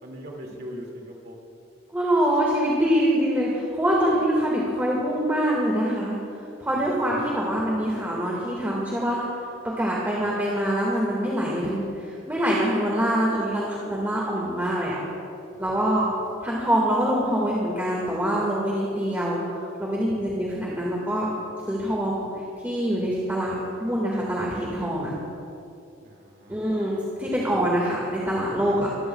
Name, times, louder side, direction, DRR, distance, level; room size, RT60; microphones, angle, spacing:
voice 1, 0.0-1.5 6.7-6.8 26.0-26.6 28.7-28.9, equal, 55° right, -1 dB, 2.3 m, -40 dB
voice 2, 1.9-6.2 6.6-9.2 9.8-15.0 15.6-16.1 16.4-19.4 19.8-21.3 21.7-22.3 22.6-23.5 23.8-25.1 26.5-29.1, equal, 10° right, -5 dB, 1.9 m, -24 dB
25.0 x 15.0 x 2.3 m, 2.7 s
head